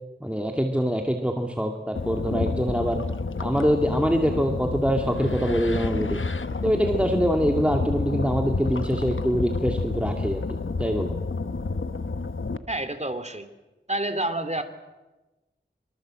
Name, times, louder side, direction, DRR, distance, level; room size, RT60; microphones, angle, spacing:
voice 1, 0.2-3.0 3.4-6.2 6.6-11.1, equal, 5° right, 2 dB, 2.4 m, -24 dB
sound 1, 2.0-12.6, left 3 dB, 80° left, 1.1 m, -29 dB
voice 2, 12.7-13.5 13.9-14.6, right 1 dB, 35° right, 8 dB, 2.9 m, -28 dB
25.0 x 24.0 x 7.7 m, 1.1 s
wide cardioid pair, 45°, 20 cm